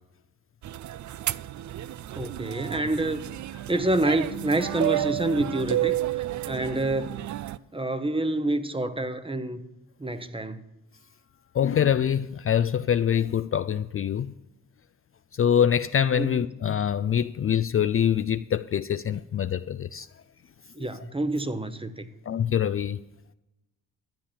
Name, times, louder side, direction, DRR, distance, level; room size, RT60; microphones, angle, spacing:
sound 1, 0.6-7.6, right 14 dB, 60° right, 0.4 m, -31 dB
voice 1, 2.1-3.2 3.7-7.2 7.7-9.6 10.0-10.6 16.1-16.6 20.7-22.1, right 1 dB, 15° right, 0.9 m, -28 dB
voice 2, 11.5-14.3 15.3-20.1 22.3-23.0, left 9 dB, 40° left, 0.4 m, -24 dB
12.5 x 8.5 x 5.7 m
cardioid pair, 55°, 34 cm